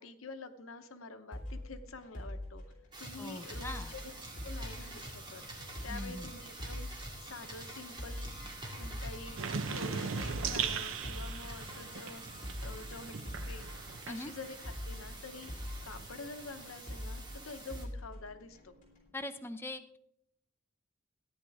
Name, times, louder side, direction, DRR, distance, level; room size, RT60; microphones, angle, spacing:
voice 1, 0.0-2.6 3.0-4.1 4.4-5.4 5.8-6.9 7.2-8.3 8.7-13.7 14.1-15.5 15.8-18.7, left 3 dB, 85° left, 9 dB, 0.9 m, -47 dB
sound 1, 1.3-19.1, left 1 dB, 40° left, 3.7 m, -45 dB
sound 2, 2.9-17.8, right 1 dB, 25° right, 2.1 m, -47 dB
voice 2, 3.2-3.9 5.9-6.3 14.1-14.3 19.1-20.0, left 1 dB, 10° left, 7 dB, 0.5 m, -42 dB
sound 3, 9.4-14.7 15.0-16.8, right 6 dB, 70° right, 0.6 m, -39 dB
14.0 x 9.7 x 3.5 m, 0.70 s
head